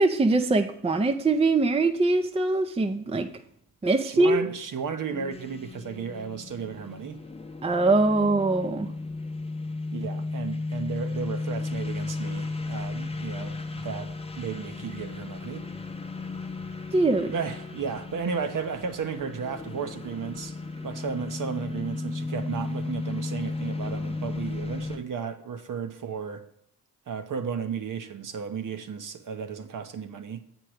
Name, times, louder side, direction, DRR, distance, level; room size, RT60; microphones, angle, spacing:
voice 1, 0.0-3.3 3.8-4.5 7.6-8.9 16.9-17.3, right 2 dB, 15° right, 0.5 m, -22 dB
voice 2, 4.0-7.2 9.9-15.6 17.3-20.6 20.8-26.4 27.1-30.4, right 6 dB, 50° right, 0.8 m, -34 dB
sound 1, 5.1-25.0, left 3 dB, 15° left, 0.8 m, -35 dB
7.7 x 4.6 x 4.9 m
supercardioid pair, 50°, 40 cm